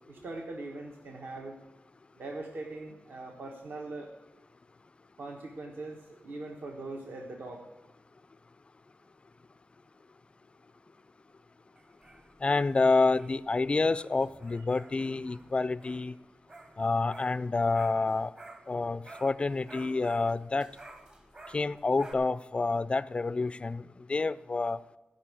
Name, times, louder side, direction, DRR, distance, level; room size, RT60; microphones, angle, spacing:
voice 1, 0.1-1.6 2.2-4.1 5.2-7.7, right 2 dB, 65° right, 1 dB, 1.3 m, -41 dB
sound 1, 11.7-18.8 19.0-22.1, right 2 dB, 25° right, 1.0 m, -52 dB
voice 2, 12.4-16.1 16.8-18.3 18.7-20.7 21.5-24.8, left 3 dB, 30° left, 18 dB, 0.3 m, -28 dB
15.5 x 5.4 x 8.5 m, 1.1 s
wide cardioid pair, 140°, 4 cm